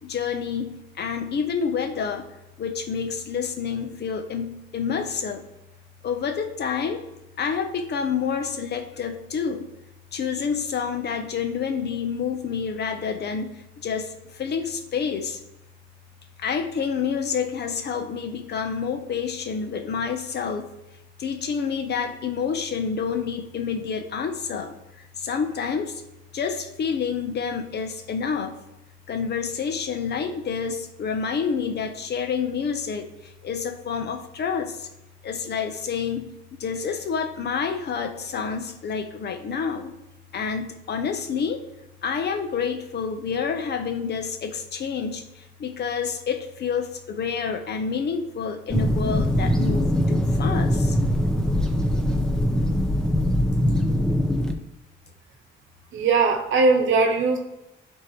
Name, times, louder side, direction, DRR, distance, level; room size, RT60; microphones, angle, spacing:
voice 1, 0.0-2.3 2.6-5.4 6.0-7.0 7.4-9.7 10.1-14.1 14.4-15.4 16.4-20.7 21.2-24.8 25.2-26.0 26.3-28.6 29.1-33.1 33.4-34.9 35.2-39.9 40.3-41.6 42.0-45.2 45.6-51.0, left 6 dB, 55° left, 7 dB, 0.9 m, -28 dB
sound 1, 48.7-54.5, equal, 5° left, 0.7 m, -22 dB
voice 2, 55.9-57.4, right 4 dB, 75° right, 3 dB, 0.9 m, -20 dB
10.5 x 3.7 x 3.1 m, 0.89 s
cardioid pair, 90°, 20 cm